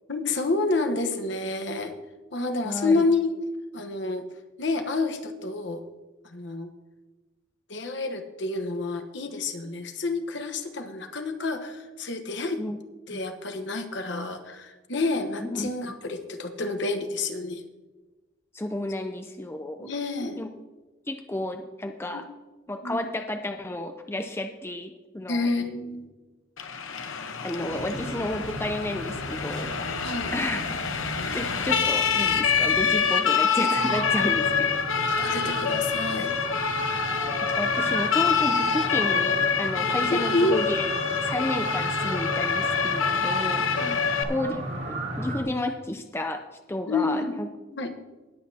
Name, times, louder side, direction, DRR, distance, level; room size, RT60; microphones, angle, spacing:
voice 1, 0.1-1.9 2.3-3.3 3.7-4.2 4.6-5.8 6.2-6.7 7.7-12.6 13.1-17.6 19.8-20.4 22.1-22.2 22.8-23.0 25.3-26.1 30.0-30.3 34.9-36.3 40.1-40.6 43.7-44.1 46.9-47.3 47.8-47.9, left 3 dB, 60° left, 6 dB, 1.1 m, -29 dB
voice 2, 2.6-3.0 12.6-12.8 13.1-13.2 15.4-15.9 18.5-19.9 20.4-20.5 21.1-22.3 22.7-25.5 27.4-30.8 31.3-34.8 37.4-40.8 41.2-43.6 44.3-46.4 46.7-47.5, left 1 dB, 10° left, 6 dB, 0.5 m, -32 dB
Siren, 26.6-44.2, left 6 dB, 85° left, 1.0 m, -26 dB
sound 1, 27.7-33.1, right 2 dB, 80° right, 0.7 m, -39 dB
sound 2, 33.7-45.4, right 2 dB, 55° right, 2.8 m, -34 dB
19.5 x 8.3 x 2.8 m, 1.2 s
head